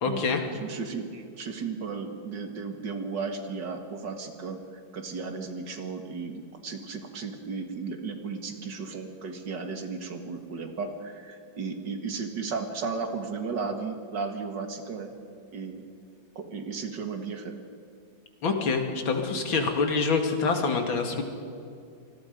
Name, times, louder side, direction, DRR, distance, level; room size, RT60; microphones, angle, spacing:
voice 1, 0.0-0.4 18.4-21.2, left 4 dB, 80° left, 4 dB, 2.8 m, -26 dB
voice 2, 0.6-15.1 15.5-15.8 16.4-17.5, right 4 dB, 60° right, 5 dB, 2.4 m, -35 dB
26.0 x 20.0 x 5.3 m, 2.5 s
omnidirectional pair, 2.1 m